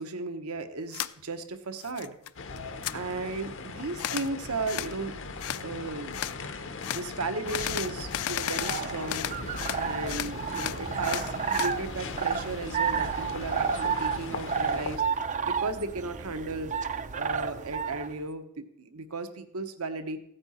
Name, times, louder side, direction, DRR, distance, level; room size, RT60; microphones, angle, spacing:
voice 1, 0.0-2.1 2.9-5.1 5.6-6.2 6.8-9.2 9.7-15.2 15.5-16.7 17.1-20.2, right 3 dB, 80° right, 9 dB, 1.0 m, -35 dB
sound 1, 0.9-1.1 1.5-2.3 2.6-3.0 4.0-4.3 4.7-4.9 5.4-5.6 6.1-6.4 6.8-7.0 7.5-9.8 10.1-11.7, left 11 dB, 80° left, 0.4 m, -33 dB
sound 2, 2.4-15.0, left 3 dB, 60° left, 0.8 m, -39 dB
sound 3, 8.4-18.1, right 6 dB, 35° right, 0.4 m, -31 dB
15.0 x 8.8 x 4.3 m, 0.76 s
head